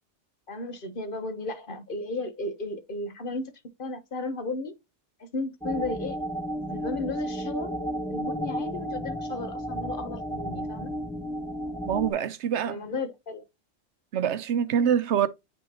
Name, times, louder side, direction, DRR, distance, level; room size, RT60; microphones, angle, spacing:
voice 1, 0.5-3.5 3.8-4.7 5.2-6.2 6.7-7.8 8.1-10.9 12.6-13.4, left 2 dB, 50° left, 1.3 m, -34 dB
sound 1, 5.6-12.1, equal, 5° left, 0.8 m, -33 dB
voice 2, 11.9-12.8 14.1-15.3, right 8 dB, 75° right, 0.9 m, -25 dB
9.2 x 3.5 x 2.9 m
omnidirectional pair, 1.2 m